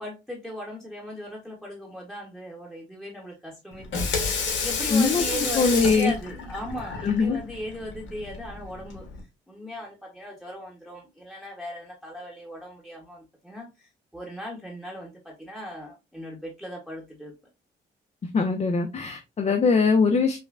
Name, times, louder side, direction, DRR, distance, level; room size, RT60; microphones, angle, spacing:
voice 1, 0.0-4.2 4.6-9.0 9.5-17.3, equal, ahead, -1 dB, 1.0 m, -38 dB
Water tap faucet / Sink (filling or washing), 3.7-9.2, left 5 dB, 70° left, 1.2 m, -30 dB
voice 2, 4.9-6.1 7.0-7.4 18.3-20.4, left 4 dB, 35° left, 5 dB, 0.5 m, -22 dB
5.4 x 2.1 x 2.4 m, 0.25 s
cardioid pair, 90°, 20 cm